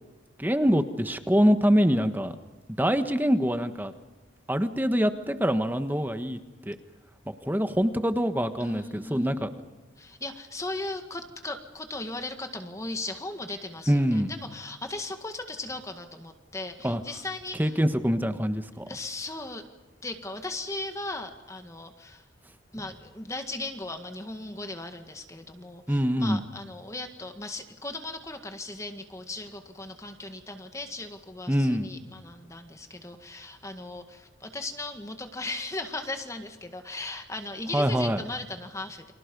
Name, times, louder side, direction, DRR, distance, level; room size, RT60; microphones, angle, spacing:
voice 1, 0.4-2.3 2.8-3.9 4.5-6.4 6.6-6.8 7.3-9.5 13.9-14.3 16.8-17.0 17.6-18.8 25.9-26.4 31.5-31.9 37.7-38.2, equal, 10° right, 8 dB, 1.4 m, -24 dB
voice 2, 8.6-9.5 10.0-17.8 18.9-19.6 20.0-22.2 22.7-39.1, left 2 dB, 15° left, 6 dB, 1.7 m, -37 dB
30.0 x 25.5 x 5.4 m, 1.2 s
head